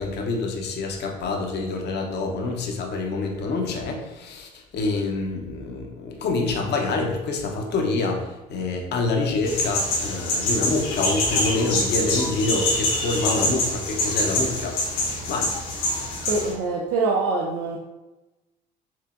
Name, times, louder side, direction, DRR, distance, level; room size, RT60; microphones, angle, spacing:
voice 1, 0.0-14.8 15.3-15.5, left 3 dB, 55° left, 1 dB, 0.7 m, -26 dB
sound 1, 9.4-16.5, left 2 dB, 70° left, 1.1 m, -25 dB
voice 2, 16.3-17.8, right 3 dB, 75° right, -2 dB, 0.5 m, -24 dB
4.5 x 2.7 x 2.5 m, 1.1 s
supercardioid pair, 70°, 21 cm